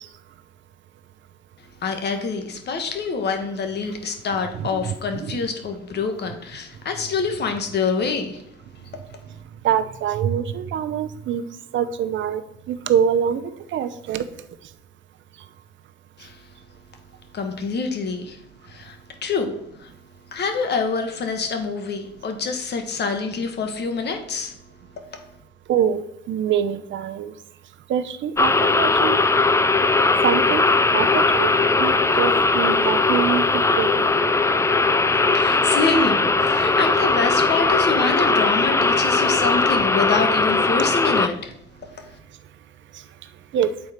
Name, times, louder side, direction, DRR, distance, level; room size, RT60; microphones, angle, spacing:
voice 1, 1.8-8.4 16.2-16.4 17.3-18.4 18.6-19.9 20.3-24.6 25.0-25.1 35.3-41.5 41.9-42.2, left 4 dB, 55° left, 5 dB, 1.4 m, -26 dB
voice 2, 4.5-5.4 9.6-11.4 11.7-12.4 12.7-13.4 13.7-14.3 25.7-27.3 27.9-29.2 30.2-30.6 30.9-31.5 31.8-34.0 43.5-43.7, right 9 dB, 70° right, 10 dB, 0.7 m, -24 dB
sound 1, 28.4-41.3, left 3 dB, 15° left, 0.4 m, -19 dB
8.3 x 4.2 x 5.1 m, 0.78 s
cardioid pair, 90°, 20 cm